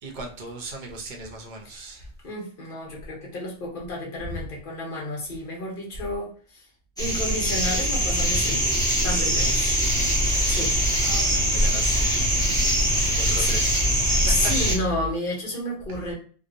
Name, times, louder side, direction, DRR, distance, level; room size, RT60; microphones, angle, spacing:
voice 1, 0.0-2.1 4.3-4.4 9.1-9.5 11.0-12.2 12.9-14.5 15.9-16.1, right 2 dB, 50° right, 2 dB, 0.6 m, -37 dB
voice 2, 2.2-6.7 7.0-8.6 9.0-9.8 10.5-10.7 12.9-13.0 14.2-16.1, left 1 dB, 50° left, -2 dB, 1.0 m, -31 dB
sound 1, 7.0-14.8, right 1 dB, 5° left, 0.5 m, -23 dB
sound 2, 9.8-15.1, left 3 dB, 85° right, 1.0 m, -32 dB
2.9 x 2.0 x 2.4 m, 0.42 s
omnidirectional pair, 1.2 m